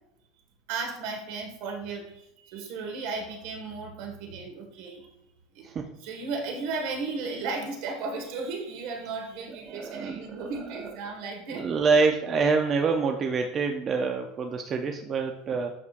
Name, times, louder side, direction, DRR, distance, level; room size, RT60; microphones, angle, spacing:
voice 1, 0.7-5.1 5.5-5.7 6.0-11.7, right 4 dB, 60° right, 3 dB, 1.6 m, -35 dB
voice 2, 9.7-10.5 11.5-15.7, right 4 dB, 25° right, 4 dB, 0.5 m, -26 dB
8.4 x 6.1 x 2.5 m, 0.83 s
supercardioid pair, 155°, 0 cm